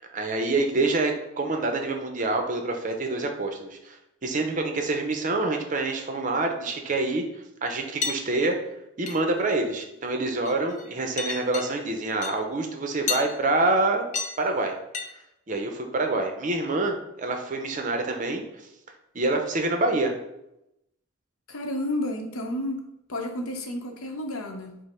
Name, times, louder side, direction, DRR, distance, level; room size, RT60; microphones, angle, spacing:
voice 1, 0.1-4.0 4.2-7.2 7.6-8.6 9.0-14.0 14.4-14.7 15.5-18.4 19.1-20.1, right 2 dB, 40° right, 4 dB, 0.5 m, -26 dB
sound 1, 8.0-8.2 9.1-9.4 9.8-10.1 10.4-10.9 11.2-11.7 12.2-12.3 13.1-13.3 14.1-14.4 14.9-15.1, left 5 dB, 35° left, 0.4 m, -30 dB
voice 2, 21.5-24.8, left 1 dB, 90° left, 4 dB, 0.7 m, -31 dB
5.0 x 2.0 x 4.2 m, 0.85 s
head